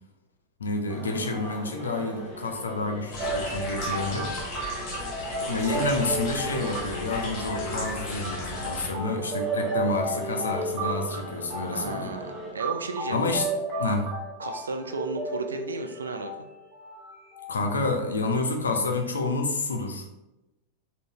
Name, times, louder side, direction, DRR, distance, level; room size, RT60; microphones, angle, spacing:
voice 1, 0.6-4.3 5.5-12.1 13.1-13.5 13.7-14.1 17.5-20.1, left 3 dB, 70° left, 4 dB, 0.4 m, -29 dB
sound 1, 0.9-12.5, equal, ahead, 1.3 m, -42 dB
sound 2, 3.1-8.9, left 2 dB, 35° left, 0.9 m, -36 dB
sound 3, 3.2-17.5, right 2 dB, 25° right, 0.9 m, -33 dB
voice 2, 3.9-4.3 5.4-5.6 11.7-13.2 14.4-16.5, right 4 dB, 70° right, 6 dB, 0.3 m, -34 dB
3.7 x 2.0 x 2.8 m, 0.95 s
figure-of-eight pair, 90°, 0 cm